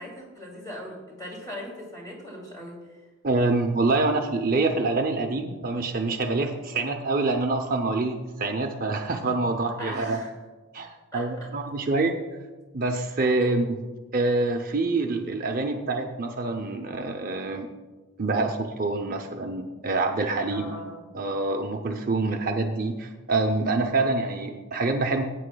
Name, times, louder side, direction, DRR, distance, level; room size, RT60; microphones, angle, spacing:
voice 1, 0.0-3.0 9.8-10.3 11.1-11.2 13.4-13.5 20.5-21.0, equal, 15° left, -3 dB, 2.6 m, -39 dB
voice 2, 3.2-10.2 10.7-12.2 12.7-13.7 14.1-17.7 18.2-20.7 21.1-25.2, right 3 dB, 40° right, 4 dB, 0.6 m, -26 dB
16.0 x 9.1 x 2.2 m, 1.3 s
head